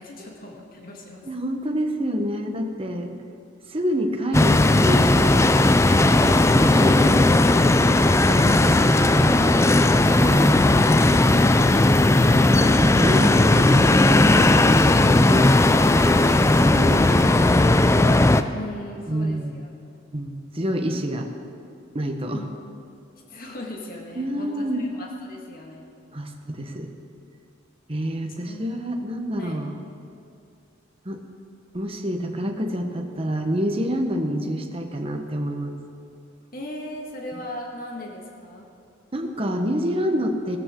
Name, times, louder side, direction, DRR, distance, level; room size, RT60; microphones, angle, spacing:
voice 1, 0.0-1.3 18.5-20.0 22.3-22.5 23.3-25.9 28.5-28.7 29.4-29.6 36.5-38.7, left 1 dB, 50° left, -1 dB, 1.8 m, -38 dB
voice 2, 1.2-3.1 3.7-7.2 8.2-9.6 10.2-10.9 12.2-15.5 16.4-17.8 19.1-19.6 20.1-21.3 21.9-22.4 24.2-24.9 26.1-26.9 27.9-29.7 31.0-31.2 31.7-35.8 39.1-40.6, equal, 30° right, 3 dB, 1.2 m, -27 dB
sound 1, 4.3-18.4, left 2 dB, 15° left, 0.4 m, -17 dB
18.0 x 13.5 x 3.8 m, 2.5 s
head